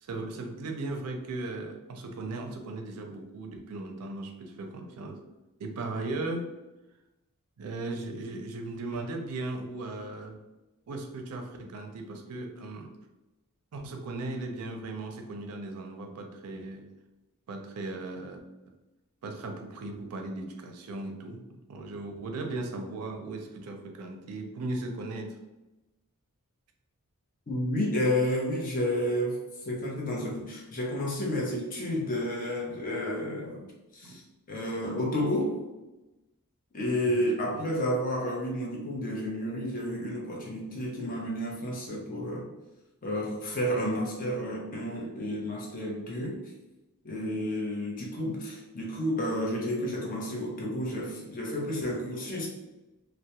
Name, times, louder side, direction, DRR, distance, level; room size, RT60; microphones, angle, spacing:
voice 1, 0.0-5.2 5.6-6.5 7.6-10.4 10.9-12.9 13.7-16.9 17.5-18.4 19.2-25.4 34.0-34.2 37.0-37.7, right 2 dB, 85° right, 4 dB, 0.4 m, -37 dB
voice 2, 27.5-33.7 33.9-34.2 34.5-35.5 36.7-42.5 43.0-46.4 47.0-52.5, equal, 40° left, -2 dB, 0.5 m, -31 dB
2.2 x 2.0 x 2.8 m, 1.0 s
head